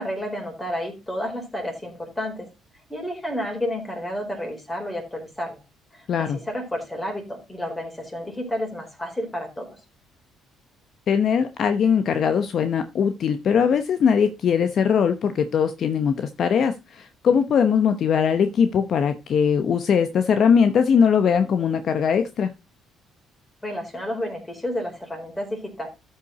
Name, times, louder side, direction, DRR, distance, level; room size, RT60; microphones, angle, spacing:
voice 1, 0.0-2.5 2.9-5.6 5.9-9.8 23.6-25.9, equal, 10° left, 4.5 m, -31 dB
voice 2, 6.1-6.4 11.1-22.5, left 7 dB, 50° left, 0.9 m, -20 dB
13.0 x 5.7 x 4.2 m
cardioid pair, 125°, 0 cm